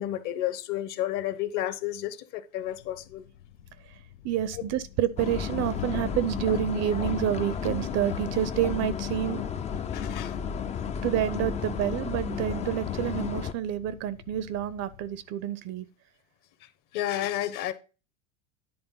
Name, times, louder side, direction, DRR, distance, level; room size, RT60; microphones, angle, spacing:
voice 1, 0.0-3.3 9.9-10.4 16.9-17.7, left 13 dB, 50° left, 1.1 m, -31 dB
Thunder, 2.7-15.3, left 11 dB, 80° left, 0.8 m, -45 dB
voice 2, 4.2-9.4 11.0-15.9, right 11 dB, 40° right, 0.7 m, -28 dB
sound 1, 5.2-13.5, left 7 dB, 15° left, 0.4 m, -33 dB
10.5 x 3.6 x 5.5 m
hypercardioid pair, 95°, 41 cm